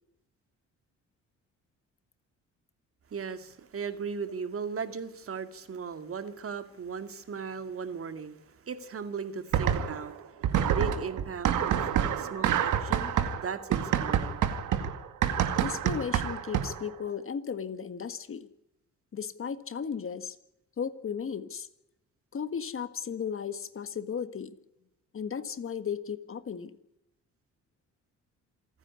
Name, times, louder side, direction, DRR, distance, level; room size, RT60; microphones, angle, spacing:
voice 1, 3.1-10.4 10.7-11.9 12.2-13.1 13.4-14.5, right 5 dB, 50° right, 2.3 m, -37 dB
sound 1, 9.5-10.1 10.4-16.9, right 9 dB, 80° right, 2.3 m, -27 dB
voice 2, 15.6-18.5 19.1-20.3 20.8-21.7 22.3-24.6 25.1-26.7, left 7 dB, 45° left, 1.7 m, -35 dB
27.0 x 9.8 x 9.7 m
cardioid pair, 90°, 30 cm